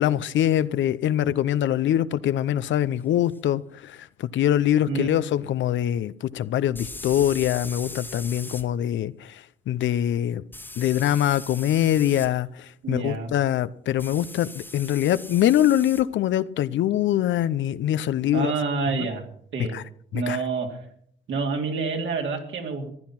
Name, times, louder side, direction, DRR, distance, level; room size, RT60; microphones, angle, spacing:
voice 1, 0.0-10.4 10.8-18.5 19.0-19.1 19.7-19.8 20.1-20.4, left 11 dB, 70° left, 0.7 m, -23 dB
sound 1, 3.3-3.4 6.7-8.6 10.5-12.3 14.0-16.0, left 2 dB, 10° left, 1.3 m, -40 dB
voice 2, 12.8-13.3 18.3-19.3 19.5-19.8 20.1-20.8 21.3-22.9, right 4 dB, 70° right, 2.9 m, -28 dB
15.0 x 10.5 x 5.8 m
cardioid pair, 90°, 20 cm